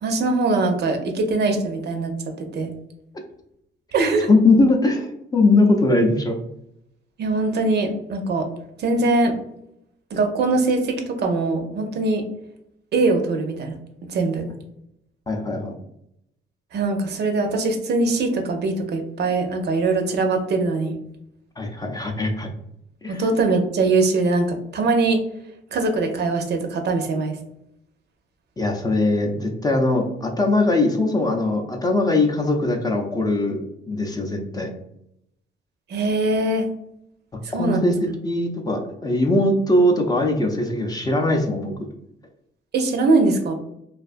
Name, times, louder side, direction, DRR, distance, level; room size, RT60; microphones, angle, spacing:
voice 1, 0.0-2.7 3.9-4.3 7.2-8.5 8.8-9.3 10.1-12.2 12.9-13.7 14.1-14.5 16.7-21.0 23.1-25.2 25.7-27.4 35.9-36.7 37.4-37.9 42.7-43.5, right 3 dB, 55° right, 4 dB, 0.5 m, -22 dB
voice 2, 4.3-6.4 15.3-15.7 21.6-22.5 23.0-23.2 28.6-34.7 37.6-37.9 38.2-41.7, left 2 dB, 20° left, 2 dB, 0.4 m, -20 dB
2.4 x 2.3 x 2.4 m, 0.78 s
cardioid pair, 90°, 20 cm